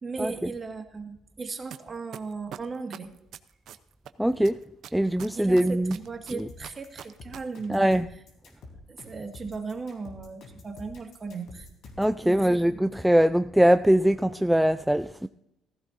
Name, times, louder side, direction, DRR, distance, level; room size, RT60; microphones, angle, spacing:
voice 1, 0.0-3.1 5.4-7.9 8.9-11.7 12.2-12.8, right 4 dB, 30° right, 1.9 m, -37 dB
sound 1, 1.7-1.8 2.1-4.1 4.4-7.4 7.6-7.7, right 10 dB, 65° right, 0.7 m, -41 dB
voice 2, 4.2-4.6 4.9-6.0 6.3-6.5 7.7-8.1 12.0-15.3, right 1 dB, 5° right, 0.4 m, -22 dB
sound 2, 6.5-12.2, left 3 dB, 65° left, 3.8 m, -47 dB
15.5 x 15.0 x 2.7 m
cardioid pair, 90°, 0 cm